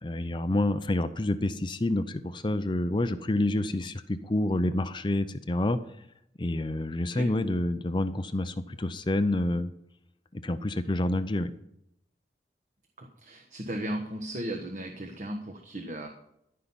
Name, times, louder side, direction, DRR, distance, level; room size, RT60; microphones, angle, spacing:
voice 1, 0.0-5.8 6.4-9.7 10.3-11.5, left 1 dB, 25° left, 11 dB, 0.5 m, -28 dB
voice 2, 13.0-16.1, right 1 dB, 40° right, 4 dB, 1.2 m, -36 dB
14.0 x 5.6 x 9.6 m, 0.79 s
head